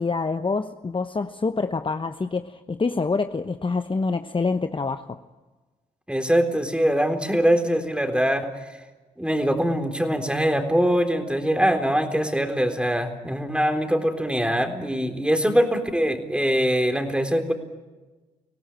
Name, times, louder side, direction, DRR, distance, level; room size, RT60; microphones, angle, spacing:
voice 1, 0.0-5.2, left 4 dB, 30° left, 9 dB, 1.0 m, -26 dB
voice 2, 6.1-8.5 9.2-17.5, equal, 5° right, 6 dB, 3.9 m, -23 dB
25.5 x 17.5 x 9.1 m, 1.2 s
hypercardioid pair, 45°, 18 cm